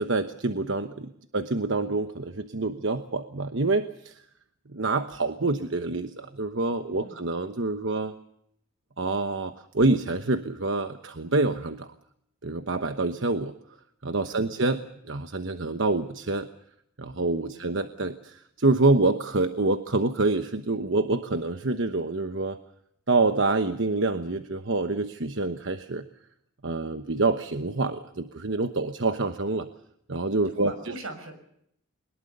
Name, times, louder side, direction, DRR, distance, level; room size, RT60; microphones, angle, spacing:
voice 1, 0.0-4.2 4.7-8.1 9.0-11.9 12.4-13.5 14.0-16.5 17.0-22.6 23.1-26.0 26.6-29.7 30.1-30.7, right 3 dB, 60° right, 8 dB, 1.1 m, -26 dB
voice 2, 6.9-7.2 14.3-14.6 17.5-17.7 30.4-31.3, right 2 dB, 85° right, 9 dB, 6.0 m, -41 dB
22.5 x 21.0 x 6.8 m, 0.72 s
head